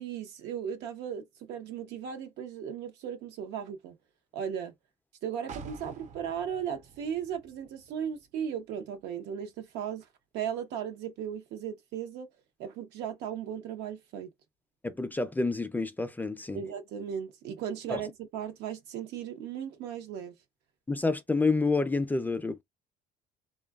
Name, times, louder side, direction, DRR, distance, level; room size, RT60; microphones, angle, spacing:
voice 1, 0.0-4.0 4.3-4.7 5.2-10.1 10.3-12.3 12.6-14.3 16.5-20.3, right 8 dB, 85° right, 0.7 m, -36 dB
sound 1, 5.5-9.2 9.6-9.7, right 5 dB, 45° right, 0.5 m, -49 dB
voice 2, 14.8-16.6 17.9-18.0 20.9-22.6, left 3 dB, 10° left, 0.3 m, -28 dB
2.5 x 2.2 x 2.3 m
cardioid pair, 110°, 17 cm